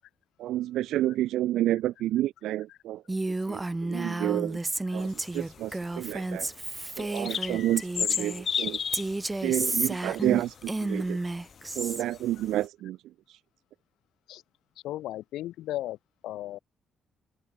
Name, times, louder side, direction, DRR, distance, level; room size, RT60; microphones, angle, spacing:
voice 1, 0.4-3.0 3.5-4.6 4.9-6.5 7.0-8.8 9.4-11.2 11.8-13.0 13.3-13.4, right 14 dB, 85° right, 0.5 m, -30 dB
Female speech woman speaking, 3.1-8.5 8.9-12.0, right 2 dB, 15° right, 1.0 m, -31 dB
sound 1, 5.0-11.1 11.4-12.7, left 7 dB, 50° left, 2.9 m, -35 dB
voice 2, 14.8-16.0 16.2-16.6, left 14 dB, 85° left, 5.9 m, -35 dB
open air
cardioid pair, 90°, 0 cm